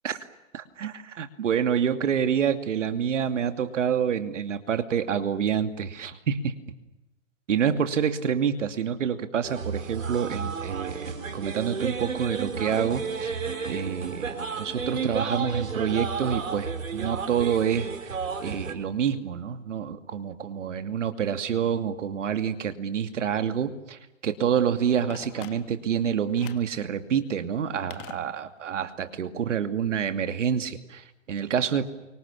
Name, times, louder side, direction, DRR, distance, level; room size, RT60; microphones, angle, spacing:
voice 1, 0.5-6.5 7.5-13.4 13.7-18.2 18.4-31.9, right 8 dB, 65° right, 8 dB, 2.7 m, -27 dB
sound 1, 9.4-18.7, right 5 dB, 80° right, 4.4 m, -32 dB
Telephone, 25.1-26.0 26.4-26.8 27.9-28.8 29.0-29.1, left 14 dB, 25° left, 1.6 m, -45 dB
29.0 x 25.0 x 7.1 m, 1.0 s
hypercardioid pair, 135°, 39 cm